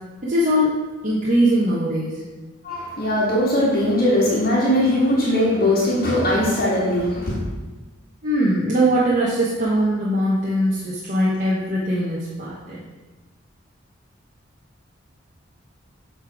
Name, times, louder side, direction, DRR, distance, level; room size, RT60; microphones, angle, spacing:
voice 1, 0.2-2.2 8.2-12.8, equal, 40° right, -7 dB, 1.1 m, -21 dB
voice 2, 2.6-7.4, left 1 dB, 45° left, -7 dB, 1.8 m, -20 dB
8.0 x 3.9 x 4.8 m, 1.2 s
head